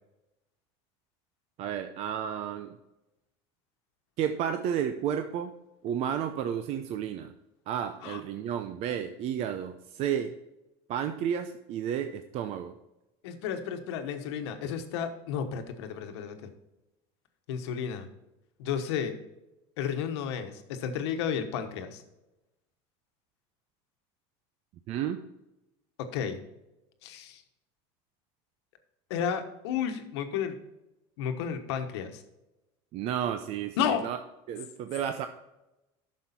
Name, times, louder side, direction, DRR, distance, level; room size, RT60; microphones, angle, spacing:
voice 1, 1.6-2.8 4.2-5.5 5.8-7.3 7.7-10.4 10.9-12.7 24.9-25.2 32.9-34.2 34.5-35.3, right 9 dB, 50° right, 8 dB, 0.6 m, -32 dB
voice 2, 13.2-16.5 17.5-18.1 18.6-19.2 19.8-22.0 26.1-26.4 27.0-27.4 29.1-30.6 31.2-32.2 33.8-34.1, left 8 dB, 90° left, 7 dB, 1.2 m, -32 dB
9.8 x 6.3 x 4.3 m, 0.96 s
supercardioid pair, 130°, 14 cm